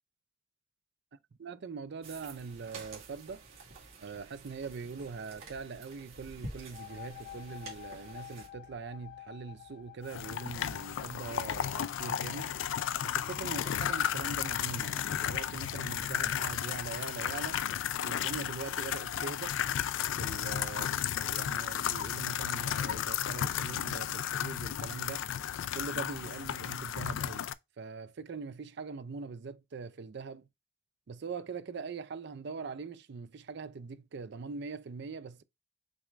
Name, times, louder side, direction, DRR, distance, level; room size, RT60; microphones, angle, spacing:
voice 1, 1.4-3.4 4.0-12.6 13.0-17.6 18.0-19.6 20.2-20.9 21.2-25.3 25.7-27.5 27.8-30.5 31.1-35.4, right 5 dB, 55° right, 0.4 m, -42 dB
sound 1, 2.0-8.5, right 3 dB, 85° right, 2.1 m, -49 dB
sound 2, 6.5-14.0, left 12 dB, 45° left, 0.7 m, -51 dB
sound 3, 10.1-27.5, left 10 dB, 65° left, 0.3 m, -34 dB
6.3 x 2.5 x 3.2 m
head